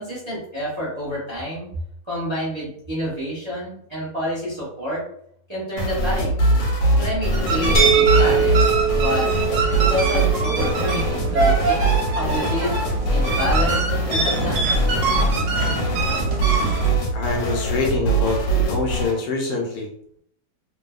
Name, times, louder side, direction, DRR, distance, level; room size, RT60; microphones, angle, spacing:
voice 1, 0.0-1.7 2.1-5.0 5.5-6.4 7.0-9.3 9.8-11.8 12.1-12.8 13.1-13.8 14.1-14.8, equal, 25° right, -9 dB, 0.6 m, -28 dB
sound 1, 5.8-19.2, right 2 dB, 90° left, 1.4 m, -22 dB
sound 2, 7.3-16.9, right 3 dB, 70° right, 1.0 m, -25 dB
sound 3, 7.7-13.5, right 7 dB, 50° left, 0.6 m, -24 dB
voice 2, 17.1-19.9, left 3 dB, 70° left, 0 dB, 1.1 m, -25 dB
2.7 x 2.6 x 2.3 m, 0.67 s
omnidirectional pair, 2.0 m